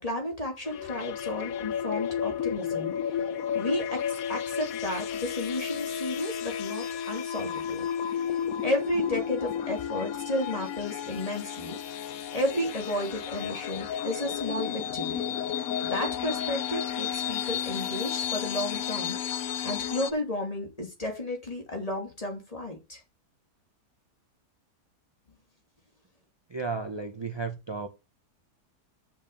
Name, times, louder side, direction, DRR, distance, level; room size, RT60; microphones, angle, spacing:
voice 1, 0.0-4.0 4.3-11.8 12.3-15.2 15.8-19.2 19.6-23.0, left 1 dB, 20° left, 2.7 m, -33 dB
sound 1, 0.7-20.1, left 9 dB, 65° left, 1.1 m, -32 dB
voice 2, 26.5-27.9, right 4 dB, 35° right, 0.4 m, -33 dB
7.4 x 5.2 x 7.0 m
omnidirectional pair, 1.7 m